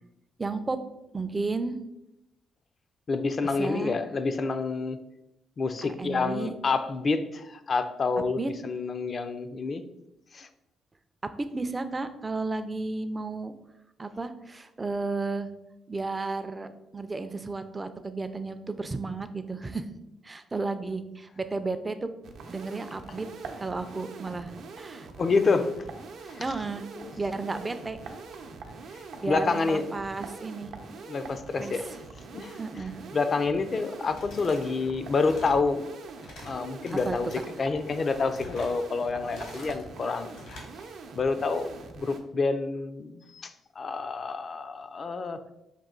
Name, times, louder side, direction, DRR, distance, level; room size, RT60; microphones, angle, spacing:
voice 1, 0.4-0.8 1.1-1.8 3.4-3.9 5.8-6.5 8.4-8.5 11.4-13.5 14.0-15.5 15.9-19.9 20.2-22.1 22.5-23.3 23.6-25.1 26.4-26.9 27.2-28.0 29.2-30.7 31.6-31.8 32.6-33.0 37.0-37.2, right 3 dB, 25° right, 10 dB, 0.4 m, -33 dB
voice 2, 3.1-5.0 5.6-9.8 10.3-10.5 25.2-25.8 27.0-27.1 29.3-30.0 31.1-31.9 32.3-32.6 33.1-35.8 36.4-37.3 37.6-40.3 41.2-45.4, left 4 dB, 40° left, 10 dB, 0.4 m, -28 dB
sound 1, 22.2-42.2, right 4 dB, 70° right, 0.6 m, -43 dB
sound 2, 34.0-34.7 35.0-35.6 36.0-36.5 36.8-37.4 37.9-38.7 39.2-39.8 40.2-40.7, left 1 dB, 80° left, 1.5 m, -46 dB
5.4 x 2.6 x 3.7 m, 0.90 s
cardioid pair, 90°, 0 cm